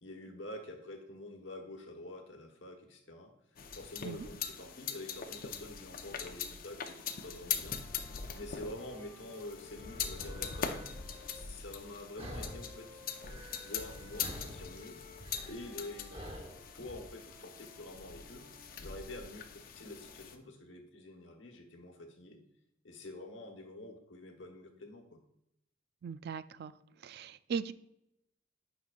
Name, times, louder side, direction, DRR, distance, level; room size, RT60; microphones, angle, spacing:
voice 1, 0.0-8.1 8.4-10.9 11.2-15.0 15.5-16.2 16.7-18.5 18.8-22.4 22.8-25.2, left 1 dB, 75° left, 3 dB, 1.2 m, -47 dB
sound 1, 3.6-20.4, left 7 dB, 50° left, 0.6 m, -42 dB
sound 2, 4.5-11.4 12.1-19.3, left 2 dB, 15° right, 1.9 m, -58 dB
sound 3, 10.2-10.5 11.1-11.3 12.2-12.8 13.1-13.9 14.2-17.0, equal, 30° right, 1.2 m, -47 dB
voice 2, 26.0-26.7 27.0-27.7, right 6 dB, 55° right, 14 dB, 0.3 m, -38 dB
9.1 x 5.4 x 2.4 m, 0.80 s
head